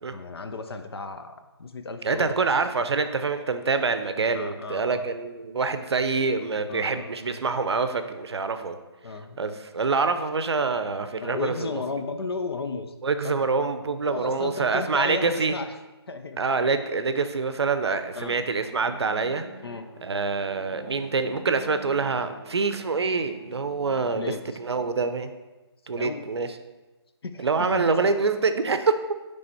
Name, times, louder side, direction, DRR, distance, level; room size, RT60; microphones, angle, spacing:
voice 1, 0.1-2.4 4.3-5.0 6.7-7.4 9.0-9.4 11.2-12.9 13.2-13.3 14.1-15.7 16.1-16.4 18.2-18.4 19.6-19.9 24.1-24.4 26.0-26.2 27.2-28.0, left 4 dB, 65° left, 7 dB, 0.6 m, -34 dB
voice 2, 2.0-8.8 9.4-11.8 13.0-15.6 16.4-19.5 20.0-25.3 25.9-26.5 27.4-29.0, right 4 dB, 70° right, 9 dB, 0.6 m, -26 dB
Bowed string instrument, 17.4-25.1, right 3 dB, 5° right, 1.9 m, -48 dB
7.6 x 3.4 x 4.1 m, 1.1 s
figure-of-eight pair, 165°, 14 cm